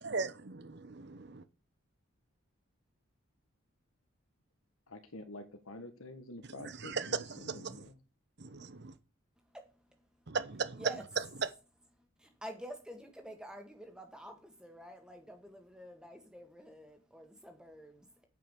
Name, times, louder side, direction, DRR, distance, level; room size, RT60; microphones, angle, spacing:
voice 1, 0.0-1.4 6.8-7.2 7.5-7.7 8.4-8.9 10.3-10.8, right 4 dB, 50° right, 0.8 m, -38 dB
voice 2, 4.9-8.0, left 1 dB, 80° left, 1.7 m, -48 dB
voice 3, 9.4-10.3 10.7-11.0 12.0-18.3, equal, 5° right, 1.7 m, -49 dB
8.7 x 5.7 x 6.7 m
head